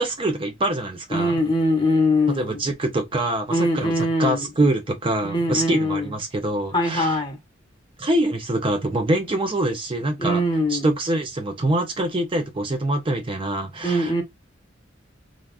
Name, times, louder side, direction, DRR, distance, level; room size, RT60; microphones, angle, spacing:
voice 1, 0.0-1.3 2.3-7.2 8.0-10.4 10.7-14.2, right 1 dB, 25° right, 0.5 m, -24 dB
voice 2, 1.1-2.6 3.5-4.5 5.2-6.1 6.7-7.4 10.2-10.9 13.8-14.2, left 1 dB, 25° left, 1.1 m, -22 dB
3.4 x 2.3 x 2.3 m
head